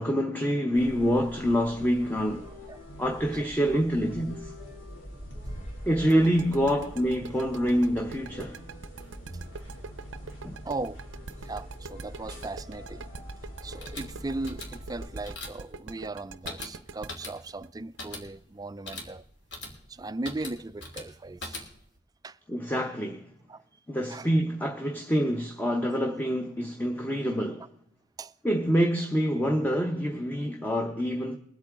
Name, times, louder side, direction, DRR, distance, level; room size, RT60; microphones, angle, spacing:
voice 1, 0.0-2.5 3.0-4.5 5.9-8.6 10.4-10.6 22.5-23.3 23.9-27.7 28.4-31.4, equal, 10° left, 0.7 m, -26 dB
sound 1, 0.7-15.4, equal, 85° left, 2.9 m, -44 dB
sound 2, 6.1-18.8, right 4 dB, 75° right, 0.6 m, -44 dB
voice 2, 10.6-11.0 11.4-13.1 13.4-19.2 19.9-21.7 22.2-22.4 23.5-23.6 24.1-24.3 28.2-28.3, right 2 dB, 20° right, 0.3 m, -37 dB
sound 3, 13.6-22.0, left 2 dB, 65° left, 2.4 m, -43 dB
22.0 x 8.4 x 3.7 m
head